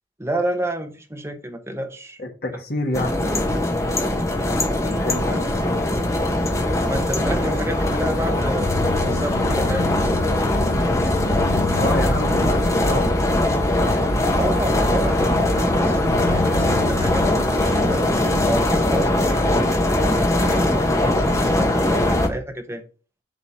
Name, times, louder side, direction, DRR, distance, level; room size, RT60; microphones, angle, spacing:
voice 1, 0.2-2.2 6.9-9.9 14.3-19.4 20.0-22.8, right 1 dB, 15° right, 1.0 m, -29 dB
voice 2, 2.2-3.6 4.9-5.8 11.7-13.1, left 1 dB, 50° left, 1.8 m, -28 dB
sound 1, 2.9-22.3, left 1 dB, 15° left, 1.0 m, -21 dB
sound 2, 7.8-18.6, left 6 dB, 80° left, 0.4 m, -33 dB
7.5 x 3.9 x 5.6 m
head